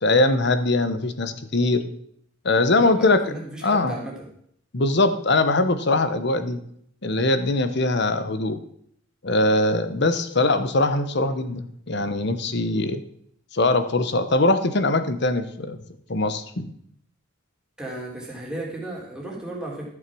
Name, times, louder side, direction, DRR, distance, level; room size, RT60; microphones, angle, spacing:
voice 1, 0.0-1.9 2.4-3.2 3.6-3.9 4.7-6.6 7.0-8.6 9.2-13.0 13.5-15.8 16.1-16.7, left 2 dB, 55° left, 11 dB, 1.0 m, -21 dB
voice 2, 2.8-4.3 8.1-8.3 10.4-10.5 17.8-19.9, right 2 dB, 5° right, -3 dB, 3.0 m, -34 dB
12.5 x 7.4 x 6.1 m, 0.67 s
head